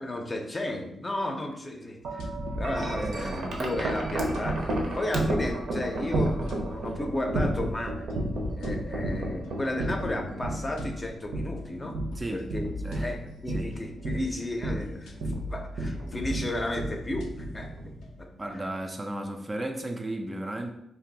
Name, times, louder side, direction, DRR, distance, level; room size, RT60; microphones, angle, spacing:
voice 1, 0.0-2.3 2.6-4.7 4.9-8.1 8.6-12.0 12.3-12.7 13.0-17.9, left 1 dB, 25° left, 3 dB, 0.5 m, -33 dB
Wind chime, 2.0-18.2, right 1 dB, 75° right, 0.6 m, -32 dB
sound 1, 2.2-4.0 4.3-4.6 5.2-5.3 6.2-6.9 7.3-10.2 10.8-11.2 11.6-14.1 14.8-17.7 18.0-18.1, equal, 90° left, 0.4 m, -43 dB
voice 2, 2.9-3.6 12.1-12.5 12.8-13.1 13.5-13.8 18.4-20.7, right 1 dB, 25° right, 3 dB, 0.4 m, -34 dB
2.6 x 2.5 x 3.9 m, 0.80 s
cardioid pair, 75°, 0 cm